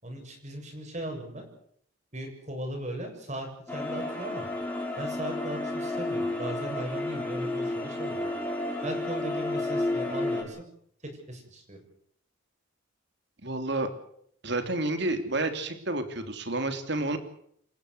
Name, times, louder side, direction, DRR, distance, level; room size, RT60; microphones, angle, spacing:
voice 1, 0.0-1.5 2.1-4.5 5.0-8.3 8.8-10.6 11.3-11.8, right 1 dB, 35° right, 3 dB, 7.2 m, -37 dB
sound 1, 3.7-10.4, left 2 dB, 10° left, 6.3 m, -31 dB
voice 2, 13.4-13.9 14.4-17.2, right 2 dB, 55° right, 8 dB, 3.3 m, -30 dB
28.0 x 15.0 x 8.2 m, 0.67 s
head